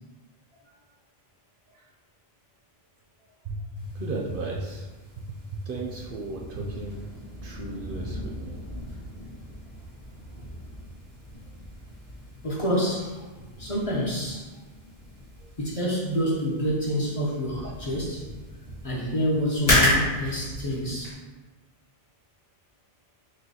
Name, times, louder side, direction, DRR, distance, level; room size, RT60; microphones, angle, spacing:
voice 1, 3.4-4.9 5.2-7.1 7.4-8.6 15.4-15.5 17.6-17.7, right 2 dB, 65° right, -1 dB, 0.7 m, -35 dB
sound 1, 3.8-21.1, left 1 dB, 65° left, 1.6 m, -33 dB
voice 2, 12.4-13.2 13.6-14.5 15.6-18.3 18.8-21.2, equal, 40° left, -5 dB, 0.7 m, -27 dB
6.2 x 2.2 x 2.8 m, 1.3 s
omnidirectional pair, 1.1 m